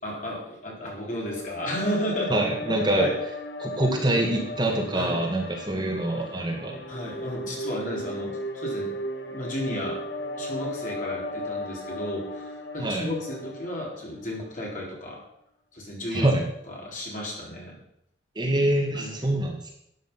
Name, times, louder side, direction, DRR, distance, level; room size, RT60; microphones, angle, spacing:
voice 1, 0.0-2.4 3.0-3.1 4.9-5.2 6.9-8.9 9.3-10.0 10.4-15.2 15.7-16.3 16.7-17.8 18.9-19.3, equal, 45° left, -3 dB, 4.4 m, -33 dB
sound 1, 1.0-14.4, left 1 dB, 75° left, 1.7 m, -35 dB
voice 2, 2.3-3.1 3.6-6.8 12.8-13.1 16.1-16.4 18.4-19.6, right 1 dB, 25° right, 0 dB, 2.0 m, -25 dB
12.5 x 9.1 x 5.8 m, 0.76 s
head